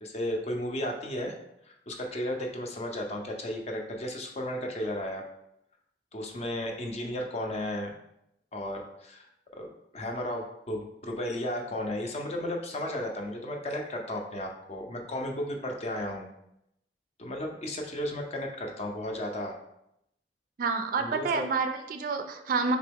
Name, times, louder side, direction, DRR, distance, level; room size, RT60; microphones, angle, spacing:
voice 1, 0.0-1.3 1.6-5.2 6.1-7.9 8.5-9.3 9.5-9.7 9.9-16.3 17.2-19.5 21.0-21.4, left 1 dB, 40° left, 2 dB, 0.6 m, -34 dB
voice 2, 20.6-22.8, right 4 dB, 50° right, 7 dB, 0.4 m, -28 dB
3.9 x 3.0 x 3.5 m, 0.80 s
head